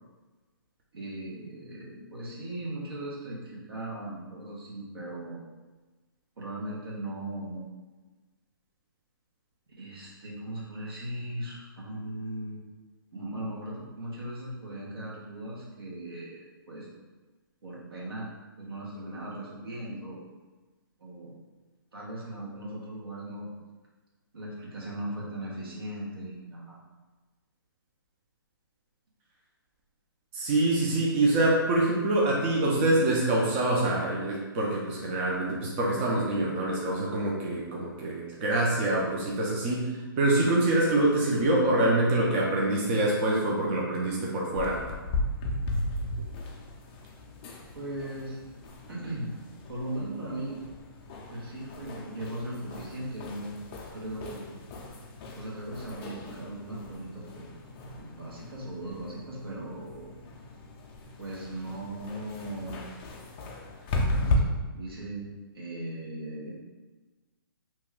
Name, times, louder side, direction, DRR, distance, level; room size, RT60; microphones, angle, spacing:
voice 1, 0.9-5.4 6.4-7.7 9.8-12.6 13.1-16.9 17.6-20.2 21.0-21.3 21.9-23.5 24.3-26.8 47.7-48.4 48.9-49.4 49.7-50.6 51.3-53.5 53.9-54.5 55.3-57.5 58.0-60.1 61.2-62.8 64.1-66.5, right 1 dB, 80° right, -4 dB, 1.1 m, -38 dB
voice 2, 30.3-44.8, right 2 dB, 30° right, -3 dB, 0.5 m, -25 dB
sound 1, 44.6-64.4, left 2 dB, 25° left, 0.4 m, -36 dB
2.9 x 2.2 x 3.6 m, 1.3 s
hypercardioid pair, 145°, 12 cm